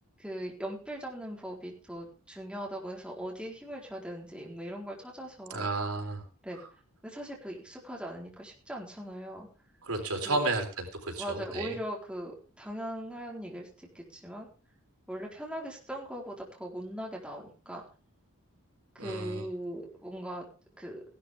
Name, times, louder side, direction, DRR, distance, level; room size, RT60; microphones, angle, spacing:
voice 1, 0.2-5.7 6.4-6.6 7.0-9.5 10.2-10.4 11.2-14.5 15.1-17.8 18.9-20.4 20.8-21.0, equal, 5° right, -2 dB, 4.1 m, -40 dB
voice 2, 5.5-6.2 9.8-11.7 19.0-19.4, right 2 dB, 90° right, 3 dB, 3.9 m, -32 dB
16.5 x 12.0 x 3.6 m, 0.34 s
head